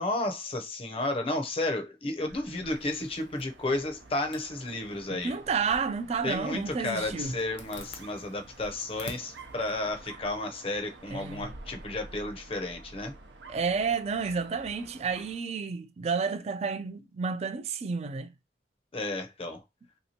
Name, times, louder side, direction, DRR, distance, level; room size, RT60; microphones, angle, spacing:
voice 1, 0.0-5.4 6.2-13.1 18.9-19.6, left 2 dB, 30° left, 0.6 m, -32 dB
Dog, 2.2-15.5, right 2 dB, 75° right, 0.6 m, -49 dB
Zipper (clothing), 2.7-10.8, left 4 dB, 75° left, 0.6 m, -52 dB
voice 2, 5.1-7.3 11.1-11.5 13.5-18.3, right 5 dB, 35° right, 0.3 m, -31 dB
3.2 x 2.8 x 2.8 m
head